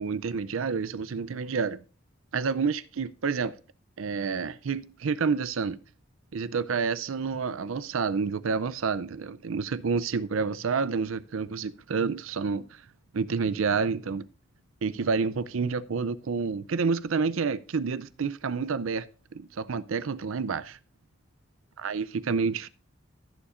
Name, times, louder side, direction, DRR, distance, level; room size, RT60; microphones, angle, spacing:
voice 1, 0.0-1.8 2.3-3.6 4.0-5.8 6.3-12.7 13.1-14.3 14.8-19.1 19.3-20.8 21.8-22.7, right 5 dB, 80° right, 0.5 m, -29 dB
16.0 x 7.1 x 2.5 m
head